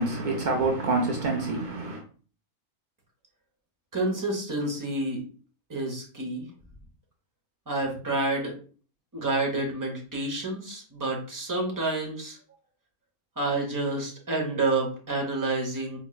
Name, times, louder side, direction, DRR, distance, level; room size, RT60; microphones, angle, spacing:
voice 1, 0.0-2.0, right 3 dB, 90° right, 0.4 m, -27 dB
voice 2, 3.9-5.2 5.7-6.5 7.7-8.5 9.1-12.4 13.4-16.0, right 2 dB, 20° right, 0.6 m, -29 dB
4.2 x 3.0 x 2.3 m
omnidirectional pair, 1.6 m